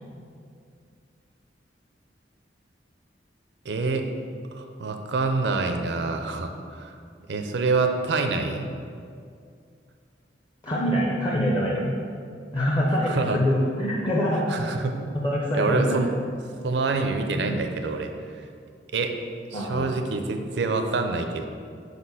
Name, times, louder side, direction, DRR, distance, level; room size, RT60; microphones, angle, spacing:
voice 1, 3.7-4.1 4.5-6.9 7.3-8.7 13.0-13.4 14.3-15.0 15.5-16.1 16.6-18.1 18.4-18.5 18.9-19.2 19.5-21.5, right 3 dB, 75° right, 6 dB, 0.5 m, -26 dB
voice 2, 10.6-11.9 12.5-14.5 15.1-16.0 19.5-19.9, equal, 25° left, -3 dB, 0.6 m, -24 dB
4.8 x 4.2 x 5.7 m, 2.3 s
head